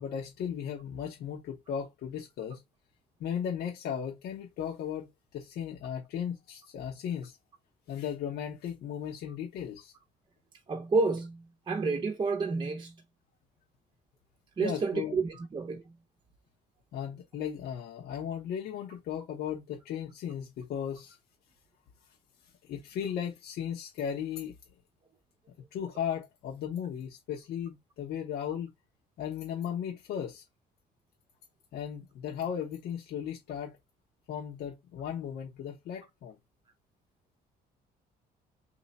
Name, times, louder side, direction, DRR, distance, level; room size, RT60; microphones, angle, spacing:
voice 1, 0.0-2.6 3.2-7.4 7.9-9.9 14.6-15.2 16.9-21.2 22.6-24.5 25.7-28.7 29.2-30.4 31.7-33.8 34.3-36.4, left 8 dB, 70° left, 1.1 m, -36 dB
voice 2, 10.7-12.9 14.6-15.9, right 3 dB, 30° right, 0.7 m, -30 dB
3.1 x 2.8 x 4.2 m
cardioid pair, 110°, 17 cm